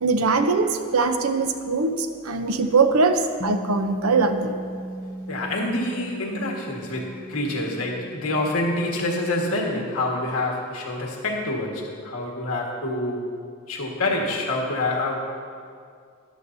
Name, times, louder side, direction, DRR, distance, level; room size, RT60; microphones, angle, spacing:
voice 1, 0.0-4.5, right 4 dB, 90° right, 7 dB, 0.7 m, -22 dB
Bass guitar, 3.4-9.6, right 1 dB, 35° left, 0.7 m, -37 dB
voice 2, 5.3-13.3 13.7-15.2, left 2 dB, 85° left, -1 dB, 1.7 m, -27 dB
13.0 x 12.0 x 2.7 m, 2.3 s
head